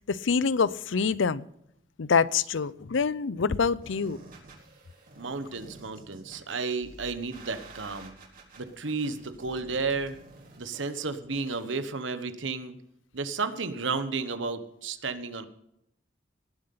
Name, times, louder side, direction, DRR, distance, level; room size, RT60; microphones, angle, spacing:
voice 1, 0.1-1.5 2.0-4.2, left 5 dB, 90° left, 0.6 m, -26 dB
sound 1, 3.8-11.8, right 2 dB, 50° right, 4.4 m, -50 dB
voice 2, 5.2-8.1 8.6-10.2 10.6-12.8 13.1-15.5, right 4 dB, 85° right, 1.3 m, -32 dB
19.0 x 7.7 x 5.7 m
head